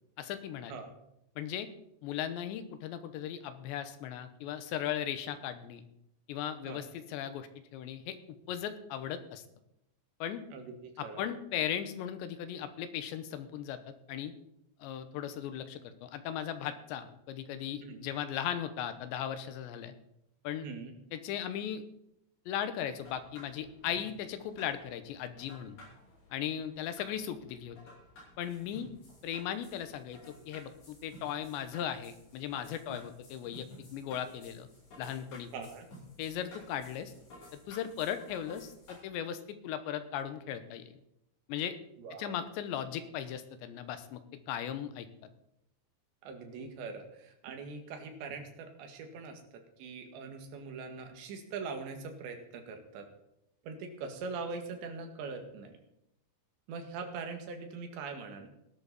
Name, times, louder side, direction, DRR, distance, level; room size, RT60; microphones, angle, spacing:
voice 1, 0.2-0.8 1.4-1.7 2.0-5.8 6.3-8.2 8.5-9.4 10.2-10.4 11.0-14.3 14.8-19.9 20.4-20.7 21.1-21.8 22.5-25.8 26.3-27.8 28.4-28.9 29.2-34.7 35.0-35.5 36.2-37.1 37.5-40.8 41.5-41.8 42.2-44.2 44.5-45.1, left 9 dB, 80° left, 10 dB, 3.2 m, -37 dB
voice 2, 10.5-11.2 17.8-18.0 20.6-20.9 32.9-33.0 35.5-35.9 42.0-42.4 46.2-49.4 49.8-53.1 53.6-55.8 56.7-58.5, right 4 dB, 70° right, 5 dB, 4.0 m, -42 dB
sound 1, 23.0-39.0, left 1 dB, 60° left, 9.4 m, -55 dB
18.0 x 12.0 x 4.2 m, 0.79 s
omnidirectional pair, 5.4 m